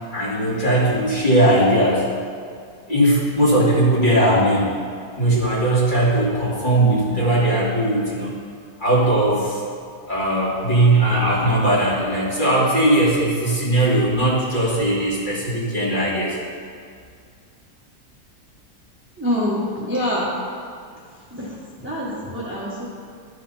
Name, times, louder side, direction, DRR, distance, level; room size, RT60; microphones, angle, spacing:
voice 1, 0.1-2.1 2.9-4.7 5.2-8.3 8.8-9.6 10.1-16.4, right 1 dB, 30° left, -8 dB, 2.6 m, -19 dB
voice 2, 19.2-20.3 21.0-22.9, left 1 dB, 10° right, -7 dB, 1.5 m, -26 dB
12.5 x 5.2 x 5.6 m, 2.2 s
omnidirectional pair, 1.7 m